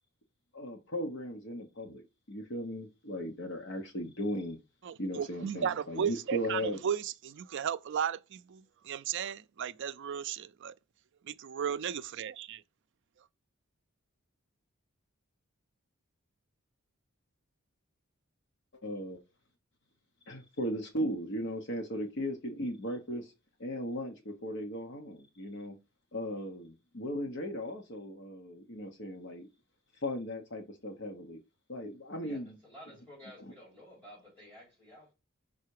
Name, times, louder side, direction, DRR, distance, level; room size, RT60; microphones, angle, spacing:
voice 1, 0.5-4.6 5.0-6.8 18.8-19.2 20.3-23.3 23.6-25.8 26.1-29.5 30.0-31.4 31.7-32.6 33.5-33.6, equal, 55° left, 1.2 m, -37 dB
voice 2, 4.8-10.7 11.3-12.6, right 8 dB, 55° right, 0.4 m, -35 dB
voice 3, 32.2-35.1, equal, 10° left, 3.8 m, -53 dB
5.6 x 4.1 x 4.8 m
head